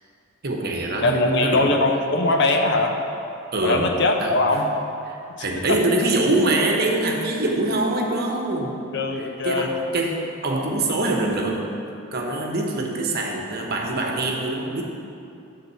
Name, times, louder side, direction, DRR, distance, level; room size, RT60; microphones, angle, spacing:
voice 1, 0.4-1.7 3.5-3.9 4.2-4.3 5.1-8.8 9.4-11.7 12.1-14.8, right 2 dB, 55° right, 1 dB, 1.1 m, -24 dB
voice 2, 1.0-3.0 3.6-4.7 5.3-5.8 8.9-9.7, left 2 dB, 65° left, 3 dB, 0.8 m, -21 dB
10.5 x 3.7 x 6.9 m, 2.6 s
head